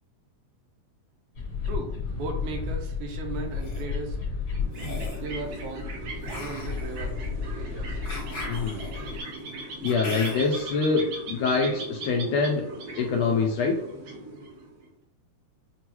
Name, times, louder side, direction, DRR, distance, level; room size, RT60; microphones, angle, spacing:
sound 1, 1.4-9.2, left 5 dB, 55° left, 1.1 m, -33 dB
voice 1, 1.7-4.3 5.2-6.0 6.3-7.3 7.6-8.0, right 3 dB, 80° right, 3 dB, 2.0 m, -37 dB
sound 2, 3.3-3.8 4.7-5.3 6.2-10.6, left 1 dB, 25° left, 1.0 m, -39 dB
sound 3, 4.4-14.8, right 2 dB, 65° right, 2.2 m, -39 dB
voice 2, 8.5-8.8 9.8-12.6 13.0-13.8, left 4 dB, 80° left, 0 dB, 1.5 m, -25 dB
6.2 x 2.3 x 3.0 m, 0.74 s
omnidirectional pair, 3.5 m